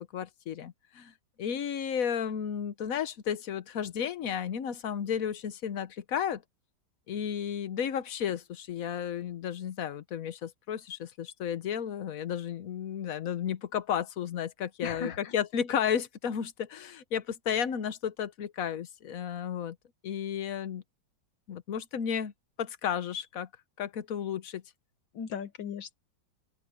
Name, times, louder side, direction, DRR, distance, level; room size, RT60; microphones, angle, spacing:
voice 1, 0.1-6.4 7.1-19.8 20.0-20.8 21.5-22.3 22.6-23.5 23.8-24.6, left 8 dB, 55° left, 1.2 m, -33 dB
voice 2, 14.8-15.3 25.1-26.0, left 6 dB, 75° left, 1.9 m, -37 dB
open air
omnidirectional pair, 2.0 m